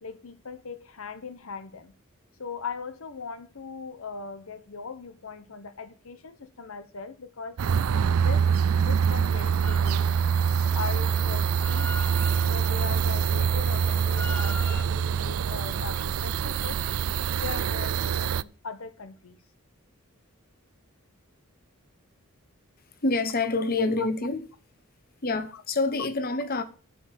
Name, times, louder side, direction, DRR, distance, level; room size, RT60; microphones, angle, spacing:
voice 1, 0.0-1.9 2.4-8.5 8.9-10.2 10.7-12.0 12.5-17.0 17.4-19.4 24.0-24.1 25.5-25.6, left 5 dB, 80° left, 0.9 m, -39 dB
sound 1, 7.6-18.4, right 7 dB, 85° right, 0.4 m, -25 dB
Drill, 9.6-14.8, left 2 dB, 10° left, 0.7 m, -41 dB
voice 2, 23.0-24.5 25.2-26.6, left 3 dB, 45° left, 1.1 m, -27 dB
11.0 x 5.3 x 7.3 m
head